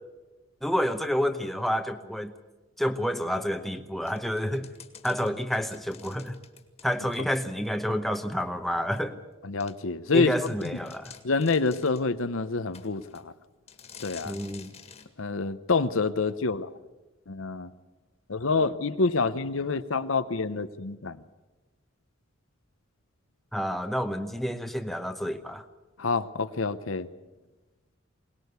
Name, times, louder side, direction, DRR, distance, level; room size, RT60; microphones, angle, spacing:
voice 1, 0.6-2.3 2.8-4.7 5.0-6.4 6.8-9.2 10.1-11.1 14.3-14.7 23.5-25.6, equal, ahead, 7 dB, 0.9 m, -29 dB
sound 1, 4.1-7.7 8.1-8.2 9.0-9.1 9.6-9.7 10.1-10.2 10.5-12.1 12.7-13.3 13.7-15.1, left 7 dB, 30° left, 1.8 m, -49 dB
voice 2, 9.4-10.3 11.2-13.3 14.0-14.4 15.2-16.7 17.3-17.7 18.3-21.2 26.0-27.1, left 4 dB, 85° left, 12 dB, 0.9 m, -27 dB
22.5 x 19.0 x 8.2 m, 1.1 s
head